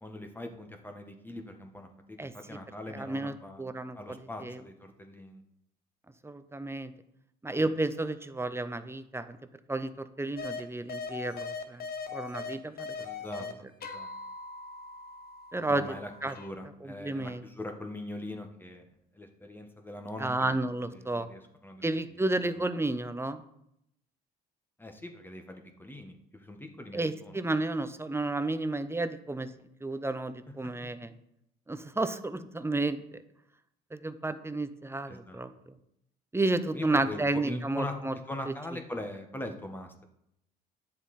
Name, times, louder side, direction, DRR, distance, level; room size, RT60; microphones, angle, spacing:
voice 1, 0.0-3.7 3.9-5.4 7.5-7.7 13.0-14.1 15.7-18.9 19.1-20.6 20.9-21.8 22.1-22.3 22.5-22.6 24.8-27.4 30.5-30.9 35.1-35.4 36.7-40.0, left 1 dB, 10° left, 4 dB, 1.4 m, -42 dB
voice 2, 2.9-4.0 4.4-4.6 6.2-6.9 7.4-9.4 9.7-11.9 12.1-12.9 15.5-15.9 16.2-16.3 17.0-17.4 20.2-21.3 21.8-23.4 26.9-29.5 29.8-31.1 31.7-33.0 33.9-35.5 36.3-38.1, right 2 dB, 10° right, 11 dB, 0.7 m, -31 dB
sound 1, 10.4-10.6 10.9-13.5 13.8-16.5, left 4 dB, 50° left, 1.0 m, -40 dB
9.5 x 7.0 x 4.2 m, 0.77 s
supercardioid pair, 70°, 20 cm